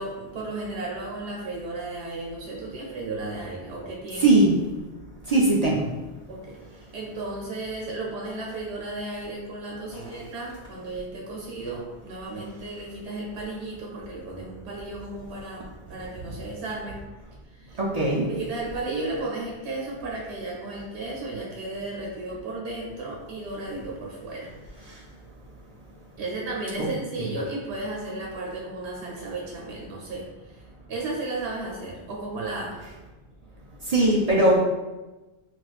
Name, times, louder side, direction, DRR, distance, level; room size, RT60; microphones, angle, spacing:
voice 1, 0.0-4.4 6.3-6.6 6.9-17.0 17.5-17.8 18.3-24.5 26.2-30.6 30.9-32.7, right 2 dB, 75° right, -3 dB, 0.9 m, -34 dB
voice 2, 4.2-4.5 5.3-5.8 17.8-18.3 26.8-26.9 33.9-34.6, right 2 dB, 55° right, -4 dB, 0.4 m, -19 dB
4.2 x 2.2 x 2.4 m, 1.1 s
omnidirectional pair, 1.1 m